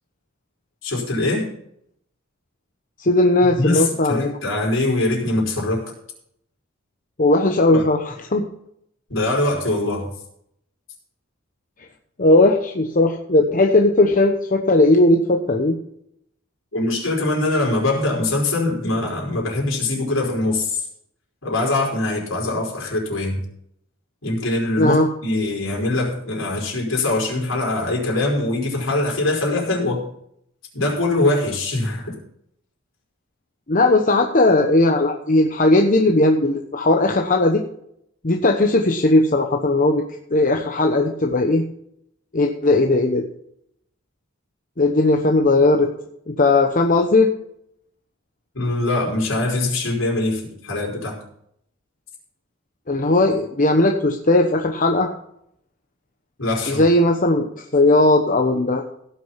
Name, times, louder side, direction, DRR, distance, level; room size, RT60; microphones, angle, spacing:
voice 1, 0.8-1.5 3.6-5.8 7.7-7.9 9.1-10.1 16.7-20.9 21.4-23.4 24.2-30.1 30.7-32.2 48.5-51.2 56.4-56.8, left 2 dB, 70° left, -1 dB, 5.0 m, -22 dB
voice 2, 3.0-4.3 7.2-8.0 8.3-8.5 12.2-15.8 24.8-25.1 33.7-37.6 38.2-40.0 40.3-41.6 42.3-43.2 44.8-45.9 46.3-47.3 52.9-55.1 56.7-57.5 57.7-58.8, left 2 dB, 40° left, 3 dB, 1.0 m, -17 dB
16.5 x 6.5 x 5.7 m, 0.72 s
head